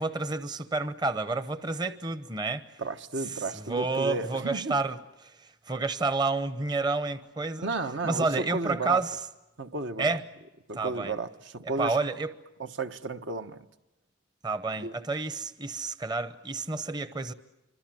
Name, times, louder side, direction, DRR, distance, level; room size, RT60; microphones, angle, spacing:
voice 1, 0.0-2.8 3.3-7.7 8.0-9.2 10.0-10.2 10.7-11.1 11.8-12.3 14.4-17.3, right 3 dB, 20° right, 0.8 m, -30 dB
voice 2, 2.8-4.8 7.6-9.0 9.6-10.1 10.7-12.0 12.6-13.6 14.8-14.9, right 3 dB, 70° right, 1.2 m, -33 dB
27.0 x 25.0 x 7.6 m
head